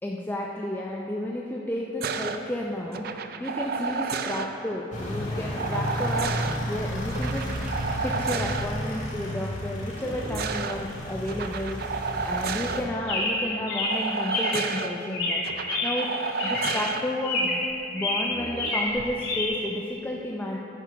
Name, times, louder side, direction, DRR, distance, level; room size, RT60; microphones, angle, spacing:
voice 1, 0.0-7.5 8.0-12.0 12.2-15.4 15.8-16.1 16.4-17.6 17.9-20.6, left 1 dB, 10° left, -2 dB, 0.5 m, -32 dB
sound 1, 2.0-2.4 2.9-4.5 5.6-6.6 7.1-8.7 10.0-10.8 11.3-12.8 13.9-14.9 15.4-17.0 18.3-18.7, right 5 dB, 55° right, 0.4 m, -31 dB
sound 2, 4.9-12.8, equal, 40° left, 1.5 m, -32 dB
Chirp tweet, 13.1-14.7 15.1-16.1 16.4-16.9 17.2-17.7 18.0-19.5, left 2 dB, 60° left, 2.3 m, -28 dB
10.0 x 6.7 x 5.1 m, 2.8 s
head